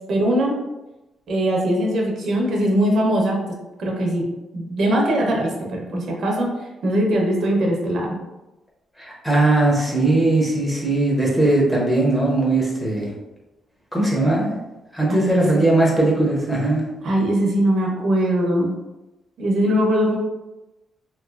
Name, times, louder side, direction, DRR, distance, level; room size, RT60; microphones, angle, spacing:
voice 1, 0.1-0.6 1.3-3.4 3.8-4.3 4.5-6.5 6.8-8.2 15.1-15.6 17.0-18.7 19.4-20.2, right 1 dB, 55° right, -1 dB, 0.7 m, -21 dB
voice 2, 9.0-13.1 13.9-14.6 14.9-16.8, right 2 dB, 5° left, -4 dB, 0.7 m, -19 dB
3.0 x 2.8 x 2.3 m, 1.0 s
cardioid pair, 160°, 0 cm